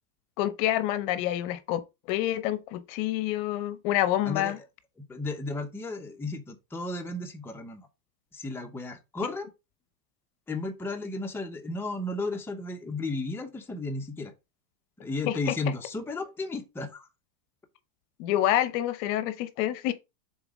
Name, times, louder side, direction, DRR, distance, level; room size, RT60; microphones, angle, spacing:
voice 1, 0.4-1.8 2.1-4.6 15.3-15.4 18.2-19.9, left 13 dB, 50° left, 1.0 m, -27 dB
voice 2, 4.2-4.7 5.1-7.9 8.3-9.5 10.5-14.3 15.0-17.1, left 2 dB, 5° left, 0.8 m, -34 dB
7.0 x 3.9 x 5.3 m
supercardioid pair, 130°, 50 cm